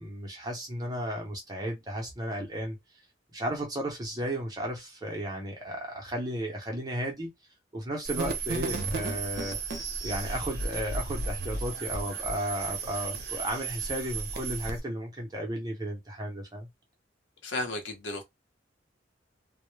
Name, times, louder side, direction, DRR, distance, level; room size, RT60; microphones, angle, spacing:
voice 1, 0.0-2.8 3.3-7.3 7.7-9.6 10.0-16.7, equal, 20° right, 0.7 m, -34 dB
sound 1, 8.0-14.8, right 4 dB, 60° right, 0.6 m, -34 dB
voice 2, 17.4-18.2, left 2 dB, 80° left, 0.8 m, -33 dB
2.2 x 2.1 x 3.1 m
head